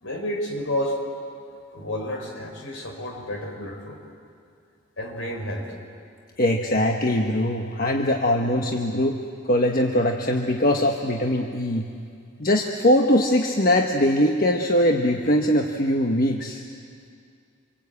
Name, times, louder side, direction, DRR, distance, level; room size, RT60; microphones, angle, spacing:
voice 1, 0.0-1.0 1.7-4.0 5.0-5.7, left 1 dB, 65° left, 1 dB, 5.0 m, -30 dB
voice 2, 6.4-9.2 9.5-11.9 12.4-16.6, left 1 dB, 40° left, 2 dB, 1.2 m, -21 dB
26.5 x 23.5 x 8.5 m, 2.4 s
head